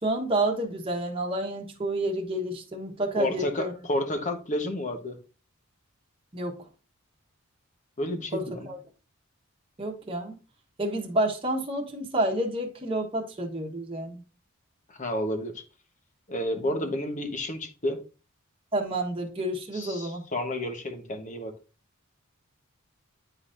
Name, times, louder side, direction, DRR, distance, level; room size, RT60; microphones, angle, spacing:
voice 1, 0.0-3.7 6.3-6.5 8.3-8.8 9.8-10.4 10.8-14.2 16.7-16.9 18.7-20.2, right 1 dB, 25° right, 1.2 m, -29 dB
voice 2, 3.2-5.2 8.0-8.7 14.9-15.6 16.3-18.0 19.7-21.5, left 1 dB, 35° left, 1.1 m, -31 dB
9.9 x 4.0 x 2.6 m
head